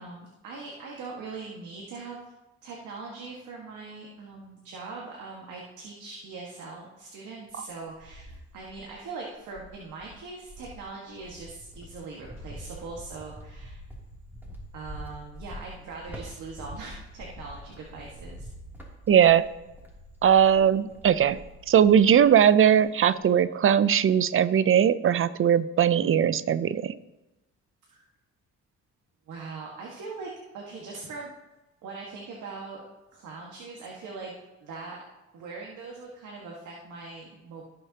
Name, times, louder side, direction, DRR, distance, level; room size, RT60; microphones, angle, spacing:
voice 1, 0.0-2.2 2.6-13.8 14.7-18.5 27.9-28.1 29.3-31.3 31.8-32.8 33.1-34.3 34.6-35.0 35.3-37.6, right 4 dB, 80° right, -2 dB, 1.8 m, -41 dB
Cricket, 7.5-9.0 9.5-22.4 22.7-23.3, equal, 5° right, 2.9 m, -45 dB
voice 2, 19.1-19.5 20.2-21.4 21.7-26.9, right 9 dB, 45° right, 16 dB, 0.5 m, -20 dB
17.0 x 6.6 x 2.9 m, 1.0 s
cardioid pair, 90°, 30 cm